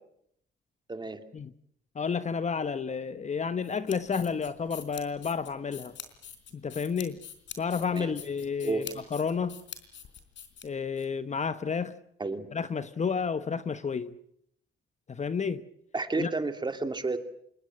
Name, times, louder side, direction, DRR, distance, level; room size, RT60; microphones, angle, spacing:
voice 1, 0.9-1.2 7.9-8.1 8.6-8.9 12.2-12.5 15.9-17.2, right 3 dB, 20° right, 2.5 m, -31 dB
voice 2, 1.9-5.9 6.6-7.2 7.6-9.6 10.6-11.9 12.5-14.1 15.1-15.6 16.2-16.3, left 6 dB, 35° left, 1.1 m, -31 dB
sound 1, 3.6-11.1, left 8 dB, 70° left, 4.1 m, -45 dB
26.5 x 20.5 x 7.7 m
cardioid pair, 90°, 20 cm